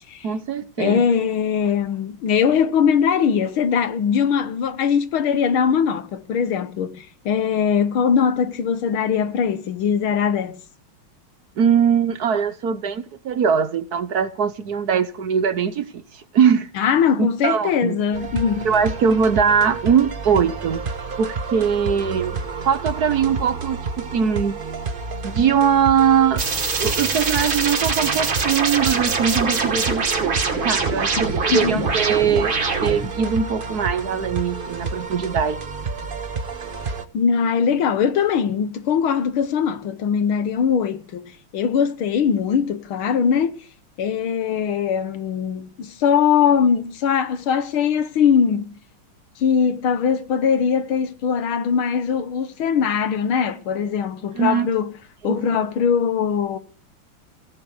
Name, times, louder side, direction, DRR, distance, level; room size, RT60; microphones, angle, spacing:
voice 1, 0.2-1.0 11.6-16.7 17.2-18.0 18.6-20.8 21.2-22.4 22.6-24.6 25.2-26.4 26.8-32.5 32.8-35.6 36.0-36.1 54.3-54.7 55.2-55.5, right 7 dB, 55° right, 1.3 m, -21 dB
voice 2, 0.8-10.6 16.8-18.7 31.5-31.9 37.1-41.2 41.5-43.6 44.0-48.7 49.4-54.9 55.2-56.6, left 7 dB, 85° left, 2.1 m, -21 dB
sound 1, 18.1-37.1, right 4 dB, 35° right, 0.9 m, -30 dB
sound 2, 26.4-33.1, right 4 dB, 75° right, 3.3 m, -24 dB
17.0 x 10.0 x 8.1 m
omnidirectional pair, 2.2 m